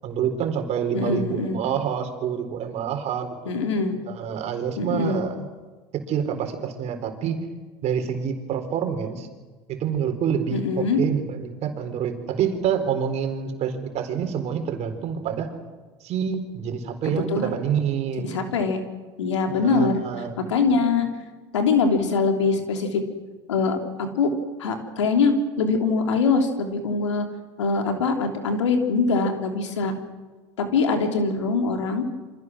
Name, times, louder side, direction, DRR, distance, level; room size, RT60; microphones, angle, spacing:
voice 1, 0.0-3.3 4.1-5.5 5.9-7.4 7.8-9.3 9.7-15.5 16.0-18.4 19.5-20.4, right 8 dB, 50° right, 6 dB, 4.3 m, -27 dB
voice 2, 0.9-1.6 3.4-4.0 4.8-5.2 10.5-11.0 17.1-17.5 18.3-18.8 19.2-20.0 20.5-21.1 21.5-23.0 23.5-23.8 24.1-24.3 24.6-27.3 27.6-29.9 30.6-32.0, left 4 dB, 90° left, 4 dB, 3.2 m, -23 dB
28.0 x 25.5 x 6.2 m, 1.3 s
hypercardioid pair, 85°, 15 cm